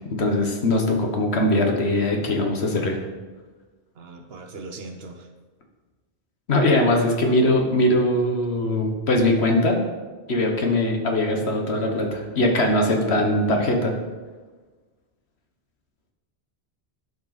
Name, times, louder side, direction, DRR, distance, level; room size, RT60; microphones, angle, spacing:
voice 1, 0.0-3.0 6.5-9.8 10.3-13.9, left 1 dB, 80° left, 2 dB, 1.5 m, -21 dB
voice 2, 4.0-5.3, right 3 dB, 70° right, 6 dB, 1.1 m, -39 dB
11.5 x 5.5 x 4.1 m, 1.3 s
omnidirectional pair, 1.1 m